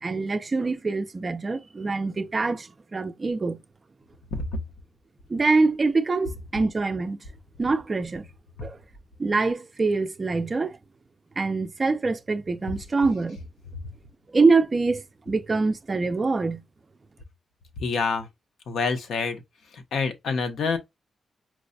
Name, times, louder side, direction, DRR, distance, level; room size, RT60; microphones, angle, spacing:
voice 1, 0.0-3.6 5.3-7.2 7.6-8.3 8.6-8.8 9.2-10.8 11.4-13.4 14.3-16.6, right 3 dB, 25° right, 0.4 m, -24 dB
voice 2, 17.8-18.3 18.7-19.4 19.7-20.8, left 4 dB, 75° left, 0.7 m, -27 dB
4.6 x 2.1 x 2.5 m
wide cardioid pair, 155°, 0 cm